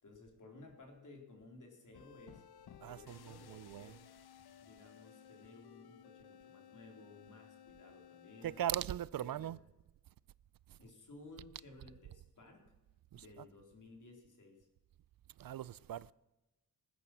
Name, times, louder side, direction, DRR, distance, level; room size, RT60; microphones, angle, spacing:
voice 1, 0.0-2.4 2.9-4.0 4.6-9.5 10.8-12.7 13.1-14.7, left 2 dB, 55° left, 3.8 m, -57 dB
sound 1, 1.9-8.9, left 9 dB, 80° left, 0.9 m, -58 dB
voice 2, 2.8-3.9 8.4-9.6 15.4-16.1, right 11 dB, 65° right, 0.5 m, -39 dB
20.0 x 9.7 x 6.1 m
wide cardioid pair, 110°, 38 cm